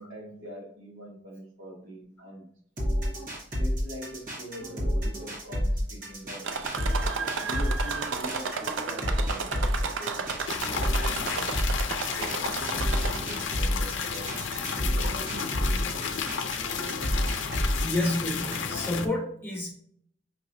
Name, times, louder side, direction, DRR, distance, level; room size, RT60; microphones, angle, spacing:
voice 1, 0.0-2.5 3.5-6.5 7.4-10.3 10.6-11.6 12.1-14.4 14.8-16.1, equal, 85° right, -2 dB, 1.5 m, -43 dB
sound 1, 2.8-18.8, equal, 45° right, 1.4 m, -30 dB
sound 2, 6.4-13.5 14.0-14.6 15.4-15.5 15.9-16.0, right 5 dB, 70° right, 0.5 m, -33 dB
sound 3, 10.5-19.1, left 6 dB, 70° left, 0.5 m, -32 dB
voice 2, 17.8-19.7, left 1 dB, 10° left, -2 dB, 1.1 m, -30 dB
5.3 x 2.9 x 2.6 m, 0.64 s
head